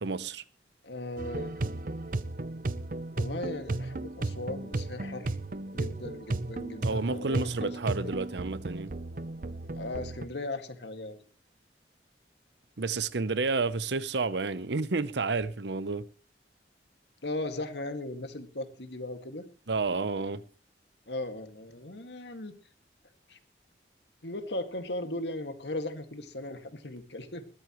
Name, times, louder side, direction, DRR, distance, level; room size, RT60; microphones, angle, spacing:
voice 1, 0.0-0.4 6.8-8.9 12.8-16.1 19.7-20.4, right 3 dB, 80° right, 0.8 m, -30 dB
voice 2, 0.8-1.6 3.2-5.4 5.7-7.8 8.0-8.2 9.7-11.2 17.2-19.5 21.1-22.5 23.3-23.4 24.2-27.4, left 2 dB, 80° left, 2.1 m, -37 dB
sound 1, 1.2-10.3, right 2 dB, 50° right, 0.7 m, -34 dB
21.0 x 13.5 x 3.1 m
head